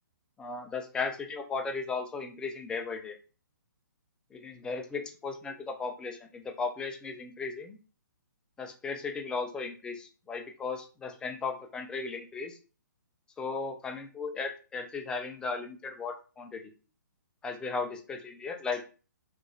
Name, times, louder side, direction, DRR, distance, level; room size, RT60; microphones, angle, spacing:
voice 1, 0.4-3.2 4.3-7.8 8.6-12.6 13.4-16.7 17.4-18.8, left 4 dB, 10° left, 4 dB, 0.4 m, -36 dB
3.0 x 2.4 x 2.3 m, 0.35 s
hypercardioid pair, 140°, 11 cm